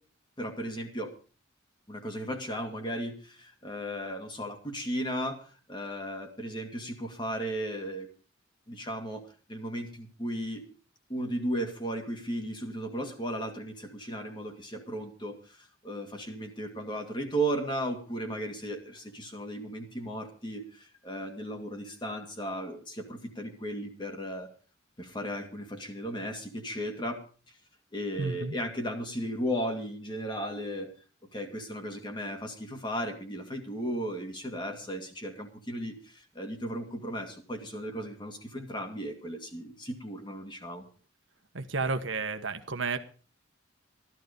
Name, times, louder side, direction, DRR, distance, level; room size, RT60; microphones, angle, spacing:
voice 1, 0.4-1.1 1.9-8.1 8.7-10.6 11.1-24.5 25.0-27.6 27.9-30.9 31.3-40.8, equal, 25° left, 4 dB, 2.4 m, -35 dB
voice 2, 28.2-28.5 41.5-43.0, right 4 dB, 65° right, 8 dB, 1.2 m, -31 dB
15.0 x 13.0 x 5.2 m, 0.38 s
head